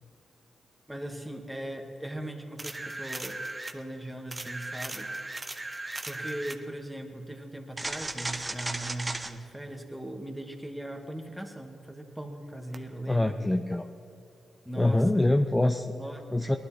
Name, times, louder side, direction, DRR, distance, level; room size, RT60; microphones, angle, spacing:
voice 1, 0.9-3.4 3.7-5.1 6.1-13.4 14.6-15.4 15.9-16.6, right 1 dB, 5° right, 3 dB, 2.2 m, -39 dB
sound 1, 2.6-3.8 4.3-6.6 7.8-9.3 12.7-12.8, right 2 dB, 25° right, 1.2 m, -36 dB
voice 2, 13.1-13.9 14.8-15.9 16.3-16.6, left 1 dB, 15° left, 6 dB, 0.7 m, -24 dB
19.0 x 11.5 x 4.4 m, 2.7 s
supercardioid pair, 45°, 0 cm